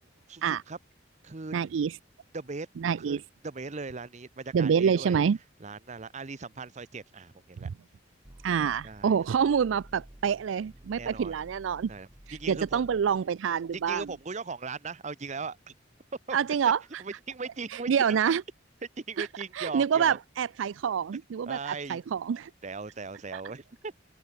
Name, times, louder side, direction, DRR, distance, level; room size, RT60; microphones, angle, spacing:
voice 1, 0.3-0.8 1.2-1.5 2.3-2.7 3.0-5.2 5.6-7.7 8.8-9.4 11.0-11.4 11.9-12.8 13.7-15.7 16.3-16.4 17.0-18.2 19.0-20.2 21.5-22.0 22.6-24.0, right 4 dB, 40° right, 0.8 m, -39 dB
voice 2, 1.5-1.9 2.8-3.2 4.5-5.4 8.4-11.9 12.5-14.0 16.3-16.8 17.9-18.4 19.2-19.3 19.6-22.5 23.3-23.4, right 7 dB, 85° right, 0.4 m, -26 dB
sound 1, 8.2-14.2, right 1 dB, 20° right, 1.1 m, -53 dB
open air
head